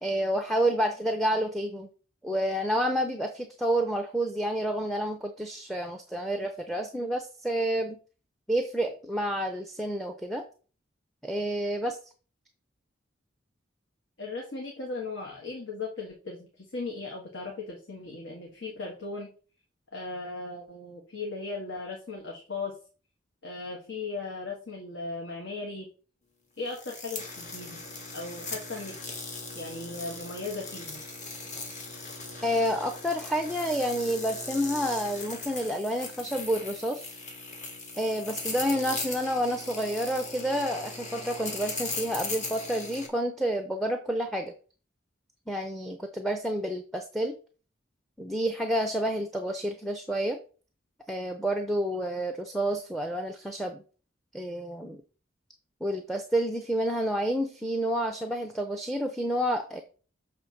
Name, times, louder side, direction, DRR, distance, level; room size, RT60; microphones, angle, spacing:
voice 1, 0.0-1.9 2.2-8.0 8.5-10.4 11.2-12.0 32.4-37.1 38.0-44.5 45.5-47.4 48.2-50.4 51.1-53.8 54.3-55.0 55.8-59.8, equal, ahead, 5 dB, 0.6 m, -29 dB
voice 2, 14.2-19.3 19.9-22.8 23.4-25.9 26.6-27.8 28.1-28.9 29.5-31.0, left 3 dB, 75° left, -1 dB, 1.5 m, -37 dB
sound 1, 26.7-43.1, left 3 dB, 40° left, 1.5 m, -39 dB
6.8 x 3.4 x 5.7 m, 0.38 s
head